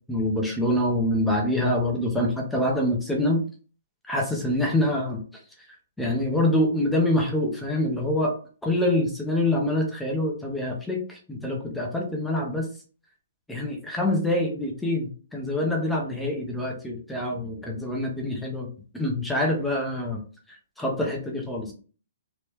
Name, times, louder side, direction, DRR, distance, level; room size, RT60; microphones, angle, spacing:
voice 1, 0.1-3.4 4.1-5.2 6.0-8.3 8.6-12.7 13.5-18.7 18.9-20.2 20.5-21.7, left 1 dB, 5° left, 0 dB, 0.7 m, -25 dB
3.3 x 2.9 x 3.0 m, 0.38 s
hypercardioid pair, 155°, 0 cm